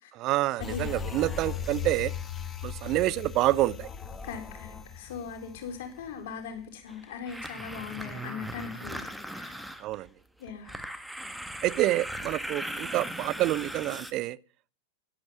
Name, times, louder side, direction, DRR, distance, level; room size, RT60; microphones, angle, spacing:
voice 1, 0.2-2.1 2.6-3.9 9.8-10.1 11.6-14.4, right 16 dB, 40° right, 0.7 m, -27 dB
sound 1, 0.6-6.2 6.6-6.7, left 7 dB, 20° left, 1.7 m, -38 dB
voice 2, 4.2-9.7 10.4-10.7, left 6 dB, 50° left, 4.4 m, -40 dB
sound 2, 6.9-10.1 10.5-14.1, right 1 dB, ahead, 1.5 m, -38 dB
13.5 x 12.0 x 6.0 m
figure-of-eight pair, 90°, 0 cm